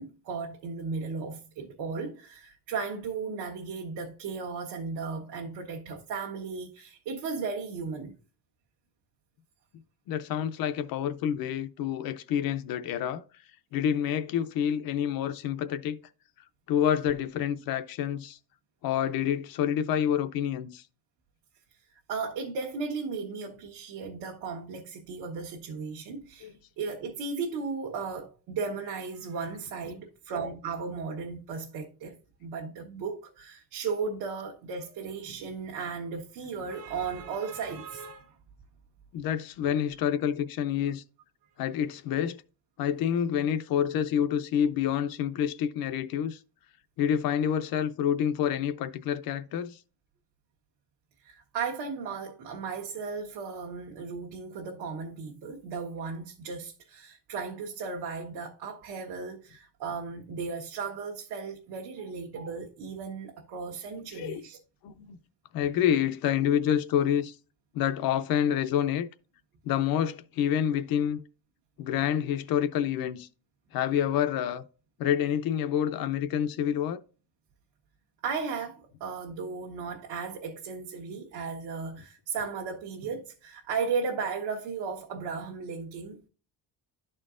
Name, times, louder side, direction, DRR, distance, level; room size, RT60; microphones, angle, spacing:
voice 1, 0.0-8.1 21.9-38.4 51.2-64.6 78.2-86.3, right 5 dB, 75° right, 1.2 m, -35 dB
voice 2, 10.1-13.2 13.7-16.0 16.7-18.4 18.8-20.8 26.4-26.5 39.1-41.0 41.6-42.4 42.8-46.4 47.0-49.8 63.9-64.5 64.8-65.2 65.5-67.4 67.7-69.1 69.6-71.2 71.8-73.3 73.7-74.6 75.0-77.0, left 9 dB, 60° left, 0.6 m, -28 dB
12.0 x 4.3 x 2.4 m
cardioid pair, 175°, 40 cm